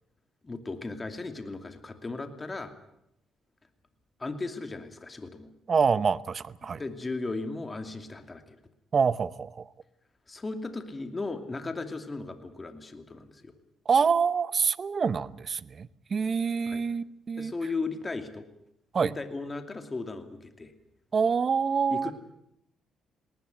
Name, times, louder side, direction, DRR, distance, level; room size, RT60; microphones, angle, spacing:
voice 1, 0.4-2.7 4.2-5.5 6.6-8.6 10.3-13.5 16.7-16.8 17.4-18.4 19.0-20.7 21.9-22.1, left 3 dB, 25° left, 7 dB, 2.7 m, -36 dB
voice 2, 5.7-6.8 8.9-9.6 13.9-17.5 18.9-19.1 21.1-22.1, right 6 dB, 45° right, 17 dB, 0.8 m, -26 dB
19.5 x 18.5 x 9.4 m, 0.80 s
cardioid pair, 90°, 0 cm